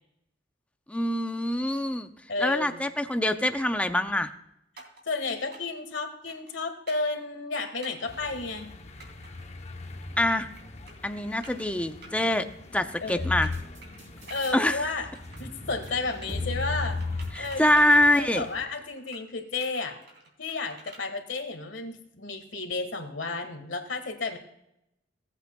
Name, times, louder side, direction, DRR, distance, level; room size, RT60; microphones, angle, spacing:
voice 1, 0.9-2.1 2.4-4.3 10.2-10.5 11.0-12.5 12.7-13.5 14.5-14.8 17.3-18.5, left 1 dB, 5° left, 8 dB, 0.5 m, -24 dB
voice 2, 2.3-2.8 5.0-8.7 13.0-13.3 14.3-15.1 15.4-17.0 17.4-17.8 18.1-20.0 20.4-24.4, left 3 dB, 75° left, 6 dB, 1.5 m, -32 dB
sound 1, 4.8-5.0 5.5-5.8 6.3-6.5 6.9-7.1 7.8-8.1 9.0-9.3 10.1-10.6 10.9-11.1 11.4-11.7 12.0-12.3 13.1-14.0 14.3-14.8 15.1-15.6 15.9-16.5 17.0-18.6 19.0-19.2 19.6-21.1, right 3 dB, 60° right, 2.8 m, -49 dB
sound 2, 8.1-18.7, left 2 dB, 35° left, 0.8 m, -46 dB
sound 3, 13.2-14.6 14.9-18.2, left 3 dB, 40° right, 3.5 m, -34 dB
17.5 x 8.2 x 2.3 m, 0.83 s
head